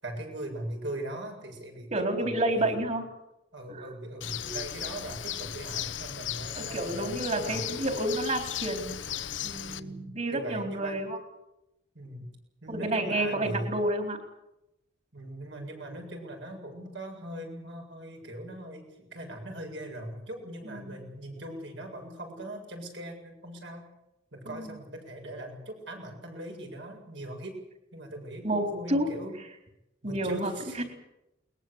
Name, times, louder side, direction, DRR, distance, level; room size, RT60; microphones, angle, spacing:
voice 1, 0.0-2.7 3.5-7.8 9.7-11.0 11.9-12.3 12.6-13.8 15.1-23.9 24.3-27.6 27.9-29.3 30.0-30.8, right 1 dB, 70° right, 2 dB, 7.7 m, -40 dB
voice 2, 1.9-3.1 3.7-3.9 6.5-8.9 9.4-11.2 12.7-14.2 20.6-21.0 24.5-24.8 28.4-29.1 30.0-30.5 30.8-30.9, right 1 dB, 35° right, 5 dB, 4.3 m, -30 dB
Bird, 4.2-9.8, left 10 dB, 75° left, 1.1 m, -36 dB
22.0 x 21.0 x 8.3 m, 0.88 s
head